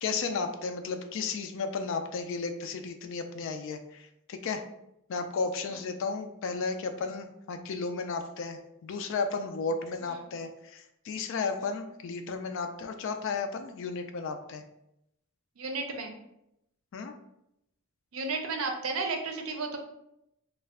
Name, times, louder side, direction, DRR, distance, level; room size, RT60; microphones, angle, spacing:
voice 1, 0.0-4.6 5.1-14.6 16.9-17.1, left 4 dB, 65° left, 7 dB, 0.3 m, -34 dB
voice 2, 15.6-16.2 18.1-19.8, right 3 dB, 75° right, 4 dB, 0.5 m, -33 dB
2.4 x 2.1 x 3.4 m, 0.82 s
head